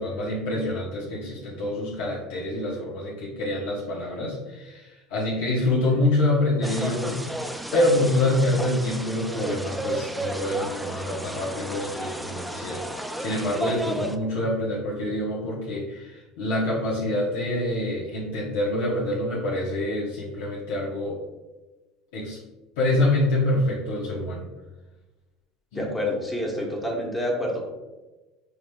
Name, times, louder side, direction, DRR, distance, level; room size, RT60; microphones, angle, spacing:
voice 1, 0.0-7.3 7.7-21.2 22.1-22.4 22.8-24.4 25.7-25.9, left 1 dB, 80° left, -6 dB, 1.0 m, -26 dB
sound 1, 6.6-14.2, right 1 dB, 5° right, 0.4 m, -33 dB
voice 2, 25.8-27.7, left 1 dB, 15° left, -1 dB, 1.1 m, -28 dB
4.8 x 3.2 x 2.2 m, 1.1 s
supercardioid pair, 90°, 0 cm